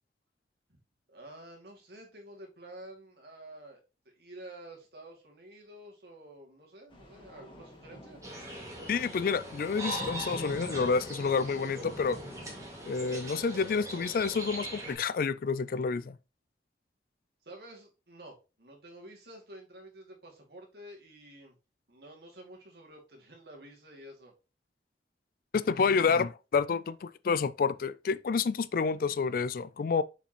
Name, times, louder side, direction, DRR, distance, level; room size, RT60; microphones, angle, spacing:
voice 1, 1.1-3.8 4.1-8.2 17.4-21.6 21.9-24.3, right 1 dB, 65° right, 2.3 m, -50 dB
sound 1, 6.9-12.7, left 1 dB, 30° left, 1.6 m, -47 dB
sound 2, 8.2-14.9, right 1 dB, 20° right, 1.9 m, -40 dB
voice 2, 8.9-12.2 12.8-16.2 25.5-30.0, left 5 dB, 55° left, 0.3 m, -29 dB
6.7 x 5.0 x 2.9 m
head